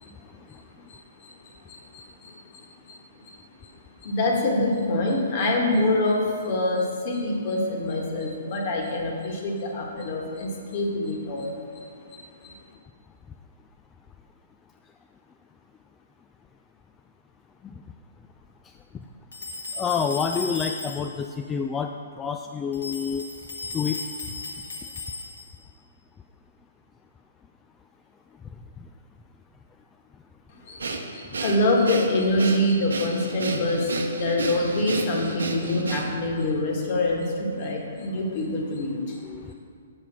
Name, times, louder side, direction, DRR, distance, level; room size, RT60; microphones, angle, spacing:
voice 1, 1.9-2.6 3.6-3.7 4.0-11.6 12.4-12.5 30.6-30.8 31.1-39.2, left 1 dB, 45° left, 0 dB, 1.6 m, -25 dB
sound 1, 19.3-21.3 22.7-25.6, left 3 dB, 70° left, 1.4 m, -36 dB
voice 2, 19.8-23.2 23.7-24.0 35.6-35.7 39.2-39.5, left 6 dB, 15° left, 4 dB, 0.3 m, -28 dB
Breathing, 30.8-36.3, right 3 dB, 75° right, 0.8 m, -31 dB
7.0 x 5.5 x 6.1 m, 2.2 s
figure-of-eight pair, 125°, 0 cm